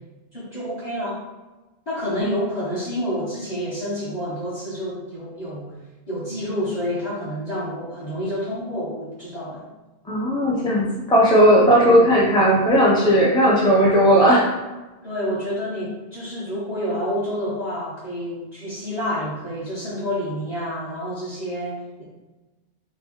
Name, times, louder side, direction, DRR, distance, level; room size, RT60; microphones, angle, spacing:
voice 1, 0.3-1.2 1.9-5.7 6.1-9.7 11.8-12.1 15.0-22.0, equal, 40° left, -9 dB, 1.0 m, -28 dB
voice 2, 10.1-14.5, equal, 5° left, -4 dB, 0.4 m, -16 dB
4.6 x 2.1 x 2.9 m, 1.1 s
omnidirectional pair, 1.1 m